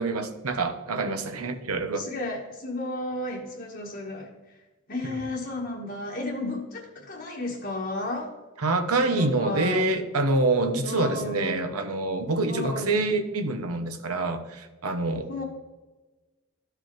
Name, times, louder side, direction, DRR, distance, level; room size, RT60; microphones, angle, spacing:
voice 1, 0.0-2.1 5.0-5.1 8.6-15.3, right 2 dB, 90° right, 7 dB, 1.0 m, -26 dB
voice 2, 1.9-4.6 4.9-8.3 9.0-9.9 10.8-11.6 12.5-12.9 15.3-15.4, left 2 dB, 45° left, -4 dB, 1.2 m, -33 dB
13.5 x 5.0 x 3.0 m, 1.2 s
head